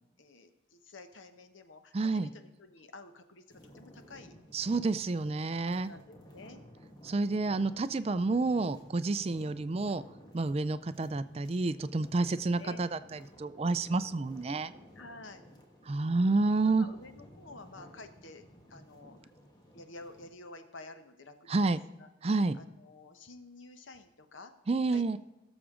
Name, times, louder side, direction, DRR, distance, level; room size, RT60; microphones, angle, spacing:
voice 1, 0.2-4.3 5.7-6.6 12.2-12.8 14.9-15.4 16.6-19.3 19.7-24.5 24.9-25.0, left 2 dB, 75° left, 9 dB, 1.0 m, -51 dB
voice 2, 1.9-2.3 4.5-5.9 7.0-10.0 10.3-14.7 15.9-16.9 21.5-21.8 22.2-22.6 24.7-25.2, right 3 dB, 30° right, 14 dB, 0.4 m, -29 dB
sound 1, 3.5-20.3, equal, 20° left, 1.5 m, -55 dB
17.5 x 7.1 x 3.7 m, 1.0 s
head